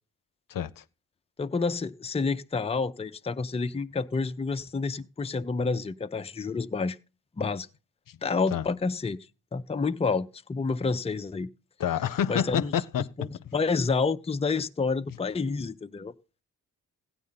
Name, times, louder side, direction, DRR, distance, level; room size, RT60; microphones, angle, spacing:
voice 1, 0.5-0.8 8.1-8.2 8.5-8.7 11.8-13.1, left 9 dB, 75° left, 0.6 m, -28 dB
voice 2, 1.4-7.0 7.4-7.7 8.2-9.2 9.5-11.5 12.3-12.7 13.2-16.1, left 4 dB, 20° left, 0.5 m, -29 dB
16.0 x 9.3 x 4.0 m
wide cardioid pair, 100°, 33 cm